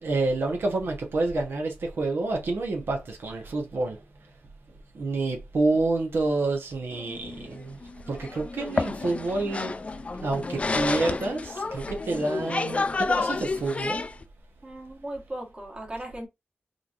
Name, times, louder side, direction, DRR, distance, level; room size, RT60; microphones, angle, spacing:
voice 1, 0.0-4.0 4.9-7.8 8.1-9.7 10.2-14.0, right 2 dB, 80° right, 1.0 m, -28 dB
sound 1, 6.9-14.2, left 3 dB, 35° left, 0.3 m, -30 dB
voice 2, 14.6-16.3, right 1 dB, 25° right, 1.3 m, -37 dB
3.9 x 3.2 x 2.5 m
wide cardioid pair, 120°, 4 cm